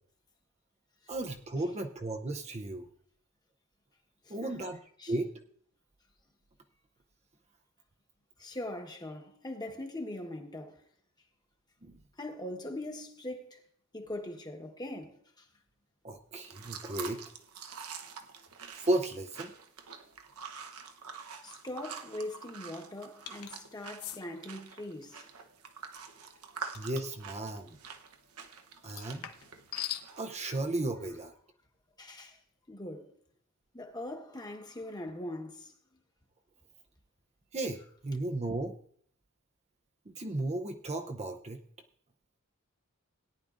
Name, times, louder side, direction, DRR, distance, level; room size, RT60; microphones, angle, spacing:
voice 1, 1.1-2.9 4.3-4.8 5.1-5.3 11.8-12.0 16.0-17.2 18.8-19.5 26.7-27.8 28.8-29.3 30.2-31.3 37.5-38.7 40.1-41.6, right 2 dB, 30° right, 0.6 m, -34 dB
voice 2, 4.2-4.6 5.0-5.1 8.4-10.8 12.2-13.6 13.9-15.5 21.4-25.2 32.0-32.4 32.7-33.1 33.7-35.7, left 1 dB, 20° left, 1.3 m, -41 dB
sound 1, 16.4-30.4, right 6 dB, 75° right, 1.0 m, -46 dB
sound 2, 23.3-23.5 24.0-24.2 26.7-27.0 28.8-30.1, left 12 dB, 75° left, 0.9 m, -40 dB
18.0 x 10.0 x 2.5 m
head